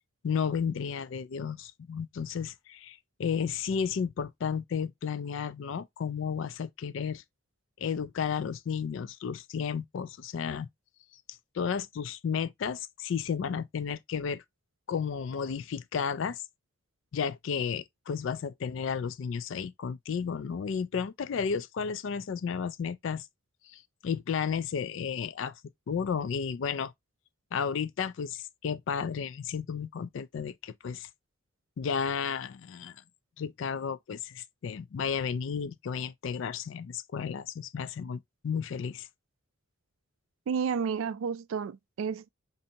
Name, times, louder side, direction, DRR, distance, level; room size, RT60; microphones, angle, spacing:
voice 1, 0.2-7.2 7.8-10.7 11.5-14.4 14.9-16.4 17.1-23.3 23.7-25.5 25.9-26.9 27.5-31.1 31.8-33.0 33.4-39.1, left 6 dB, 65° left, 0.3 m, -33 dB
voice 2, 40.5-42.3, right 6 dB, 75° right, 0.3 m, -31 dB
5.2 x 2.6 x 2.7 m
head